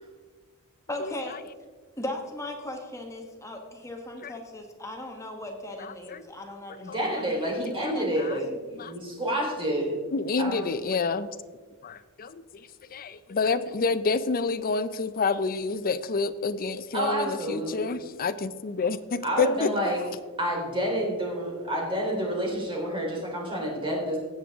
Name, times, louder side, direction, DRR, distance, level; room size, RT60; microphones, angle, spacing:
voice 1, 0.9-1.4 2.0-7.3 7.8-8.3, left 1 dB, 15° left, 2 dB, 1.3 m, -37 dB
voice 2, 5.8-6.2 6.8-7.0 7.7-7.8 8.2-8.4 8.7-8.9 10.1-11.3 11.8-19.7, left 4 dB, 40° left, 13 dB, 0.5 m, -28 dB
voice 3, 6.8-10.0 10.4-10.6 16.9-17.9 19.2-20.0 20.4-24.2, equal, 25° right, -2 dB, 3.6 m, -29 dB
17.5 x 7.6 x 3.6 m, 1.4 s
head